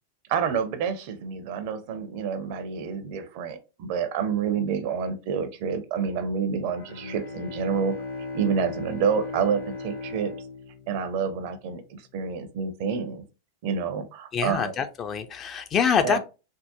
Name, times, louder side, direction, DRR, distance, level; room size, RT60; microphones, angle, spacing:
voice 1, 0.3-8.0 8.3-10.3 10.9-13.2 13.6-14.7 16.0-16.2, right 6 dB, 45° right, 0.5 m, -28 dB
Bowed string instrument, 6.7-11.7, left 3 dB, 60° left, 0.8 m, -37 dB
voice 2, 14.3-16.2, left 7 dB, 30° left, 0.4 m, -25 dB
3.5 x 2.0 x 2.7 m
figure-of-eight pair, 90°, 0 cm